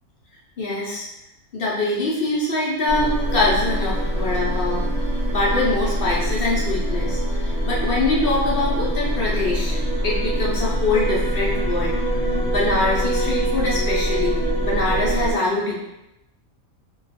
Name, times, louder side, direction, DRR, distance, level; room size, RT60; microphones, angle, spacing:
voice 1, 0.6-1.1 1.5-4.8 5.3-9.8 10.0-11.9 12.3-15.9, left 2 dB, 55° left, -4 dB, 0.7 m, -24 dB
sound 1, 2.9-15.3, right 1 dB, 10° right, 0.5 m, -23 dB
2.4 x 2.3 x 4.0 m, 0.88 s
omnidirectional pair, 1.5 m